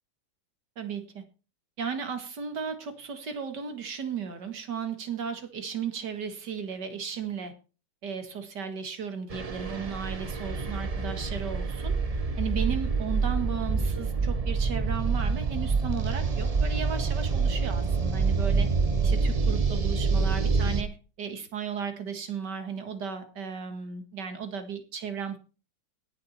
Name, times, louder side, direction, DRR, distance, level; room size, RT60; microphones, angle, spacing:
voice 1, 0.8-1.3 1.8-7.5 8.0-11.9 12.4-18.7 19.0-25.4, right 7 dB, 75° right, 7 dB, 2.4 m, -35 dB
sound 1, 9.3-20.8, right 4 dB, 30° right, 0.8 m, -27 dB
18.0 x 7.0 x 4.4 m, 0.34 s
omnidirectional pair, 1.9 m